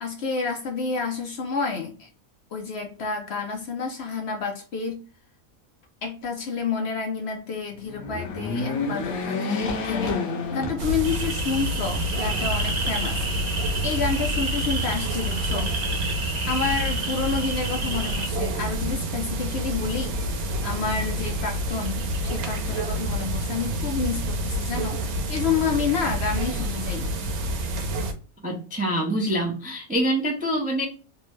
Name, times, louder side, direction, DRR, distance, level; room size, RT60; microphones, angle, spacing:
voice 1, 0.0-2.1 2.5-5.0 6.0-10.2 10.5-13.2 13.8-15.7 16.5-20.2 20.6-25.0 25.3-27.1, left 5 dB, 60° left, 0.7 m, -29 dB
sound 1, 7.8-11.4 11.9-12.0 13.1-13.9, left 3 dB, 90° left, 1.1 m, -29 dB
sound 2, 10.8-28.1, right 1 dB, 90° right, 1.2 m, -28 dB
sound 3, 11.0-18.3, right 2 dB, 50° right, 1.2 m, -31 dB
voice 2, 28.4-30.8, right 1 dB, 15° right, 0.3 m, -25 dB
3.3 x 2.1 x 3.0 m
omnidirectional pair, 1.5 m